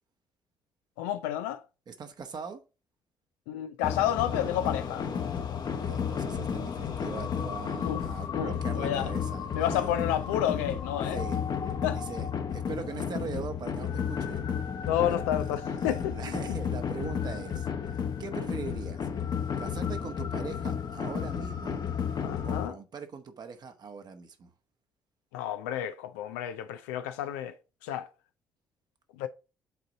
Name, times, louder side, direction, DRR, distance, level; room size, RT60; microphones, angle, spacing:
voice 1, 1.0-1.6 3.5-5.1 7.8-8.0 8.3-9.1 9.5-11.2 11.8-12.0 14.8-16.1 22.2-22.8 25.3-27.6 27.8-28.1 29.2-29.3, left 11 dB, 75° left, 0.4 m, -30 dB
voice 2, 1.9-2.6 5.8-9.8 11.1-11.4 11.9-14.5 15.0-15.2 15.9-19.0 19.6-21.8 22.4-24.5, right 5 dB, 50° right, 1.2 m, -41 dB
sound 1, 3.8-22.7, left 7 dB, 50° left, 1.0 m, -32 dB
8.0 x 3.9 x 3.8 m
hypercardioid pair, 45°, 9 cm